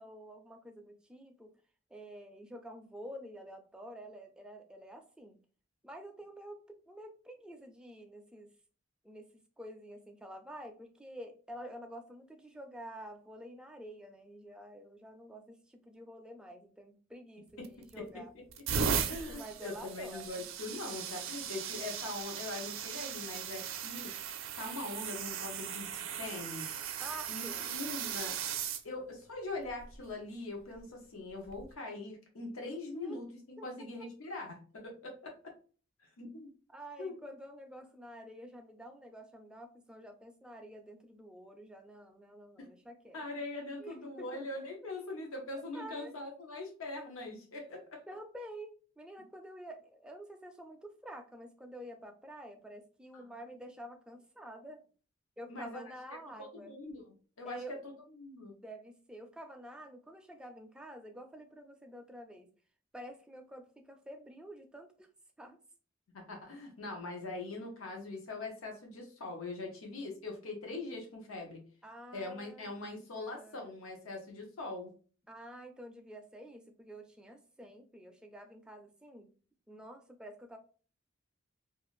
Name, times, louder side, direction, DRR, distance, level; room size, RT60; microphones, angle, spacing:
voice 1, 0.0-1.5 1.9-5.4 5.8-8.5 9.0-9.3 9.6-18.3 18.9-20.4 27.0-27.8 28.0-28.3 32.9-33.2 33.6-33.7 36.7-43.2 43.8-44.5 45.7-46.1 48.1-54.8 55.4-56.8 57.4-57.8 58.6-62.5 62.9-65.1 65.4-65.6 71.8-72.7 73.1-73.7 75.3-79.3 79.7-80.6, right 1 dB, 5° right, 4 dB, 0.3 m, -49 dB
sound 1, 17.6-18.0 18.5-28.8 29.7-29.9 31.5-31.6, right 7 dB, 75° right, 0.4 m, -37 dB
voice 2, 19.1-26.9 27.3-28.4 28.8-35.5 36.0-36.5 37.0-37.2 42.6-42.7 43.1-48.0 53.1-53.2 55.5-55.8 56.4-57.0 57.4-58.5 66.1-71.7 72.1-74.9, left 2 dB, 85° left, 1 dB, 0.7 m, -42 dB
2.5 x 2.4 x 3.0 m, 0.39 s
head